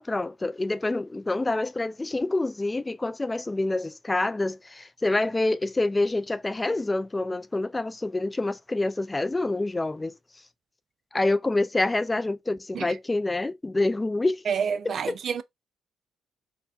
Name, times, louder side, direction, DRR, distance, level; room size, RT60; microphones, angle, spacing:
voice 1, 0.0-10.1 11.1-14.4 14.9-15.2, left 2 dB, 20° left, 0.3 m, -27 dB
voice 2, 14.5-15.4, right 7 dB, 55° right, 0.4 m, -28 dB
4.4 x 2.1 x 2.7 m
cardioid pair, 90°, 0 cm